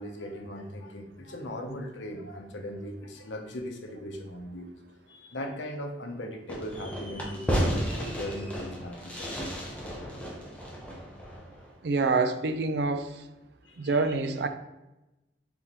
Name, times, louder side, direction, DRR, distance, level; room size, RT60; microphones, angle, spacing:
voice 1, 0.0-4.7 5.1-9.5 13.7-14.0, left 1 dB, 90° left, 4 dB, 0.7 m, -39 dB
Fireworks, 6.5-11.7, equal, 10° left, 0.7 m, -33 dB
voice 2, 11.8-13.2 13.8-14.5, right 3 dB, 65° right, 9 dB, 0.4 m, -26 dB
4.3 x 3.7 x 2.9 m, 0.98 s
head